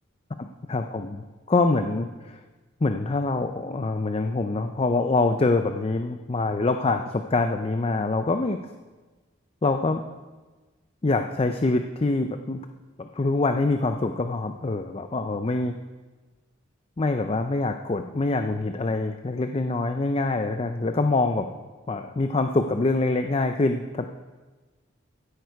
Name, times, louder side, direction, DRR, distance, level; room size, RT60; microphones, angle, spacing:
voice 1, 0.4-2.4 2.8-8.6 9.6-10.0 11.0-12.6 13.0-15.8 17.0-21.5 21.9-24.1, left 3 dB, 30° left, 7 dB, 0.5 m, -25 dB
15.5 x 9.5 x 4.7 m, 1.3 s
head